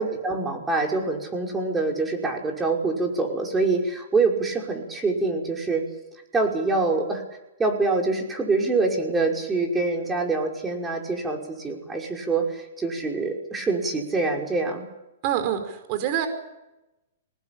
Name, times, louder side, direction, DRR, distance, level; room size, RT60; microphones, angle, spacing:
voice 1, 0.0-5.8 6.3-7.2 7.6-14.9, right 3 dB, 15° right, 1 dB, 5.7 m, -25 dB
voice 2, 15.2-16.3, right 10 dB, 45° right, 7 dB, 5.0 m, -26 dB
26.0 x 20.0 x 8.9 m, 0.95 s
hypercardioid pair, 125°, 0 cm